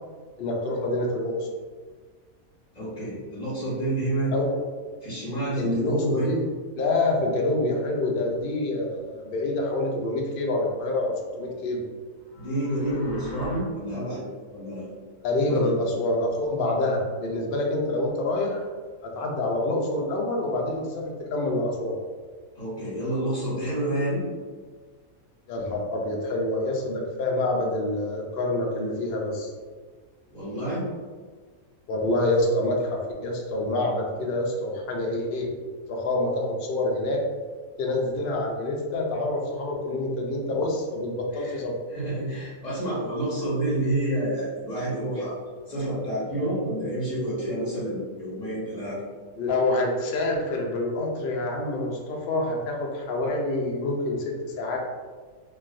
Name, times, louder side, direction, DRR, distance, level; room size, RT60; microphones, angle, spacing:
voice 1, 0.4-1.3 4.3-4.6 5.6-6.4 6.8-11.8 15.2-18.6 19.0-22.0 25.5-29.5 31.9-35.5 35.9-37.2 37.8-41.7 49.4-54.8, left 2 dB, 65° left, -1 dB, 0.5 m, -27 dB
voice 2, 2.7-4.3 5.0-6.3 12.3-14.2 14.5-14.9 15.5-15.8 22.5-24.2 30.3-30.9 41.3-41.6 41.9-45.3 45.7-49.0, right 1 dB, 30° left, -9 dB, 1.3 m, -29 dB
sound 1, 12.2-13.6, left 1 dB, 10° right, 1.0 m, -42 dB
3.1 x 2.6 x 2.4 m, 1.5 s
omnidirectional pair, 1.5 m